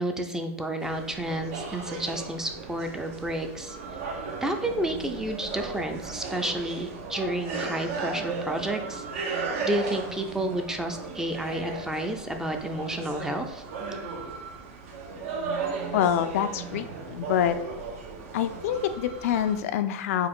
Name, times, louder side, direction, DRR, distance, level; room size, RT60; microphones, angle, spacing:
voice 1, 0.0-3.8 4.4-13.6, right 1 dB, 5° right, 5 dB, 0.4 m, -31 dB
sound 1, 0.8-19.6, right 4 dB, 70° right, 0.9 m, -36 dB
voice 2, 15.9-17.6 18.3-20.3, left 9 dB, 75° left, 10 dB, 0.4 m, -26 dB
4.6 x 2.5 x 3.6 m, 0.85 s
supercardioid pair, 135°, 8 cm